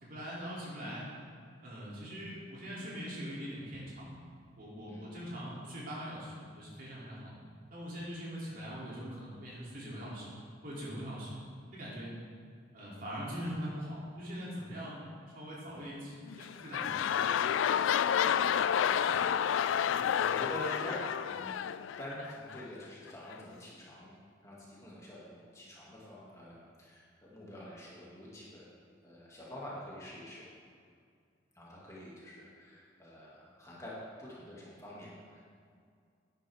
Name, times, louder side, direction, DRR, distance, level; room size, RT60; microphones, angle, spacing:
voice 1, 0.0-1.1 1.6-4.2 4.5-7.3 7.7-10.3 10.6-11.4 11.6-12.1 12.7-17.2, equal, 50° right, -7 dB, 3.0 m, -42 dB
sound 1, 16.3-22.6 23.3-23.4, left 8 dB, 90° left, 0.3 m, -30 dB
voice 2, 19.0-21.7 22.0-24.1 24.4-28.7 29.0-30.4 31.5-35.4, left 1 dB, 15° left, -7 dB, 2.3 m, -46 dB
11.0 x 10.0 x 3.6 m, 2.2 s
head